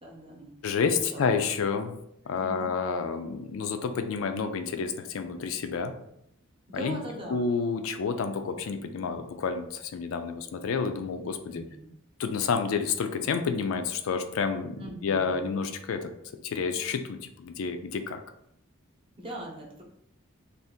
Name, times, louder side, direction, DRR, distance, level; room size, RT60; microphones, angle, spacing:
voice 1, 0.0-0.5 1.1-1.2 2.3-2.7 6.7-7.5 11.5-11.9 14.8-15.5 19.2-19.8, right 1 dB, 25° right, -2 dB, 0.7 m, -40 dB
voice 2, 0.6-1.9 2.3-5.9 6.7-7.0 7.3-11.6 12.2-16.1 16.4-18.2, left 5 dB, 75° left, 7 dB, 0.4 m, -29 dB
2.7 x 2.4 x 3.5 m, 0.75 s
head